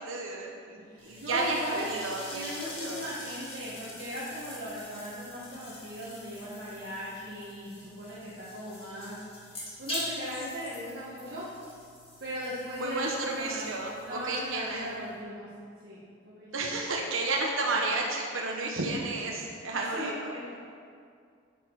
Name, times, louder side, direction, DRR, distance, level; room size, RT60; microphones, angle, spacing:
voice 1, 0.1-2.5 2.8-3.0 12.8-14.9 16.5-20.3, right 2 dB, 85° right, 0 dB, 1.2 m, -32 dB
voice 2, 0.8-1.9 2.3-9.2 9.8-11.5 12.2-13.7 14.0-15.5 15.8-16.8 19.7-20.5, equal, 50° right, -9 dB, 1.9 m, -38 dB
sound 1, 1.0-15.2, left 1 dB, 30° left, 2.2 m, -44 dB
11.0 x 8.5 x 4.9 m, 2.3 s
head